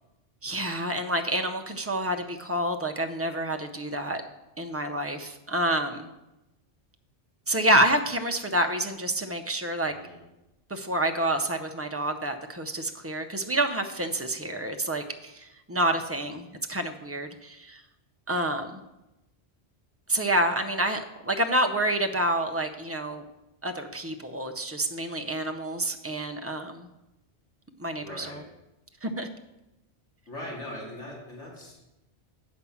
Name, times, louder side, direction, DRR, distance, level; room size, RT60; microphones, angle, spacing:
voice 1, 0.4-4.2 4.6-6.1 7.5-9.9 10.7-17.8 18.3-18.8 20.1-23.2 23.6-26.9 27.8-28.4 29.0-29.3, right 1 dB, 20° right, 5 dB, 0.4 m, -28 dB
voice 2, 9.9-10.2 16.1-16.3 28.0-28.4 30.3-31.7, left 1 dB, 85° left, -3 dB, 2.6 m, -40 dB
8.4 x 5.2 x 7.0 m, 0.95 s
omnidirectional pair, 1.2 m